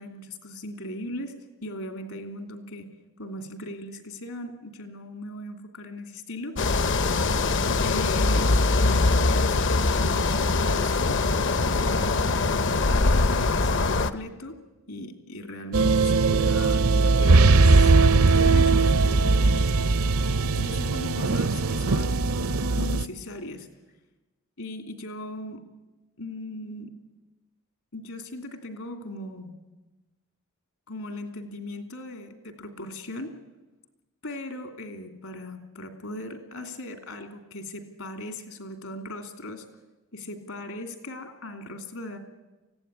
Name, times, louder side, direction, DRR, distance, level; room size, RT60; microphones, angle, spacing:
voice 1, 0.0-1.4 1.6-2.9 3.2-6.6 7.8-11.2 11.7-12.4 12.9-14.6 14.9-19.6 20.6-22.2 22.7-23.7 24.6-25.7 26.2-27.0 27.9-29.5 30.9-33.3 34.2-39.7 40.1-42.2, left 1 dB, 75° left, 6 dB, 2.9 m, -38 dB
sound 1, 6.6-14.1, left 3 dB, 55° left, 0.7 m, -22 dB
sound 2, 15.7-23.1, right 3 dB, 75° right, 0.7 m, -20 dB
24.5 x 16.5 x 9.8 m, 1.1 s
head